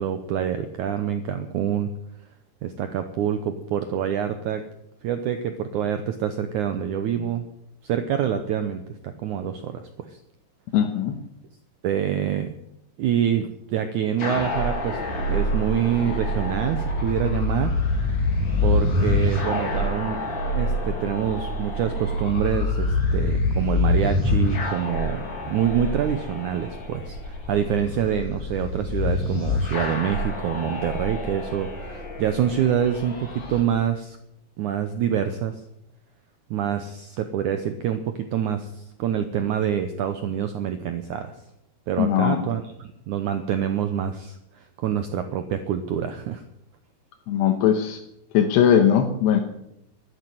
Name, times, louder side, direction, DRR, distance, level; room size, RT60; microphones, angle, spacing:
voice 1, 0.0-1.9 2.6-4.6 5.0-7.5 7.8-9.8 10.1-10.2 11.8-12.5 13.0-15.0 15.3-17.7 18.6-20.2 20.5-34.2 34.6-35.5 36.5-41.3 41.9-44.4 44.8-46.4, right 9 dB, 80° right, 8 dB, 1.7 m, -26 dB
voice 2, 10.7-11.2 42.0-42.5 47.3-48.0 48.3-49.4, left 9 dB, 85° left, 3 dB, 3.3 m, -19 dB
sound 1, 14.2-33.6, left 2 dB, 30° left, 3.1 m, -26 dB
12.0 x 11.5 x 9.5 m, 0.80 s
omnidirectional pair, 4.7 m